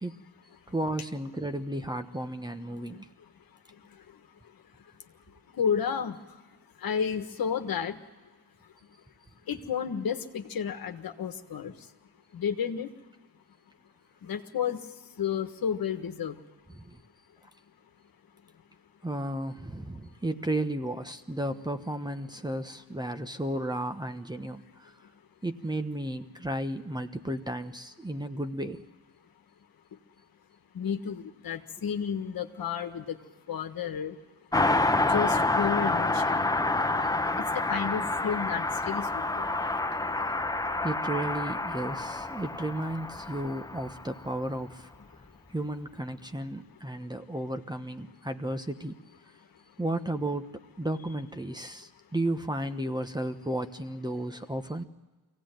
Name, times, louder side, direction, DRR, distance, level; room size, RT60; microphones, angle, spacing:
voice 1, 0.7-3.1 16.7-17.0 19.0-24.9 25.4-28.8 40.8-44.9 45.5-49.0 49.8-54.8, right 1 dB, 10° right, 8 dB, 1.2 m, -33 dB
voice 2, 5.6-6.2 6.8-8.0 9.5-11.7 12.3-12.9 14.2-14.8 15.2-16.4 30.7-33.2 33.5-34.2 35.1-36.4 37.4-39.1 39.3-39.4, left 7 dB, 65° left, 6 dB, 1.6 m, -31 dB
Car passing by, 34.5-44.5 44.7-44.8, left 2 dB, 10° left, 0.9 m, -28 dB
23.5 x 17.0 x 9.2 m, 1.3 s
cardioid pair, 70°, 38 cm